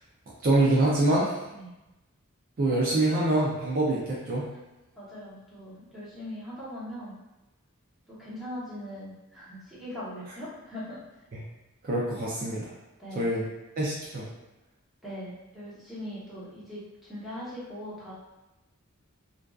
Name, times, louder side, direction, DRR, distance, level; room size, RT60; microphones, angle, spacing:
voice 1, 0.4-1.4 2.6-4.5 11.3-11.4 11.8-12.7 13.1-13.5 13.8-14.3, right 2 dB, 40° right, -5 dB, 0.4 m, -25 dB
voice 2, 5.0-7.2 8.1-11.3 13.0-13.3 15.0-18.1, equal, ahead, -11 dB, 0.8 m, -40 dB
2.5 x 2.3 x 2.2 m, 1.0 s
head